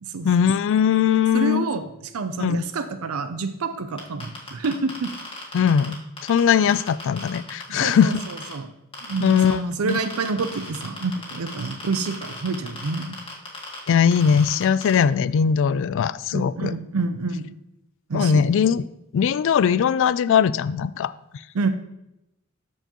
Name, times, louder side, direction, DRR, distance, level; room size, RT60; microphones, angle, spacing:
voice 1, 0.2-1.6 2.4-2.6 5.5-6.0 6.2-8.2 9.2-10.0 13.9-16.7 18.1-18.8 19.1-21.1, left 7 dB, 60° left, 16 dB, 0.3 m, -20 dB
voice 2, 1.3-5.1 7.7-8.2 8.5-8.7 9.0-13.2 16.3-17.5 18.1-18.4 21.5-21.7, right 4 dB, 75° right, 9 dB, 0.5 m, -28 dB
sound 1, 4.0-8.5 8.9-9.5 9.9-14.9, left 3 dB, 25° left, 1.7 m, -36 dB
13.0 x 4.5 x 3.0 m, 0.86 s
head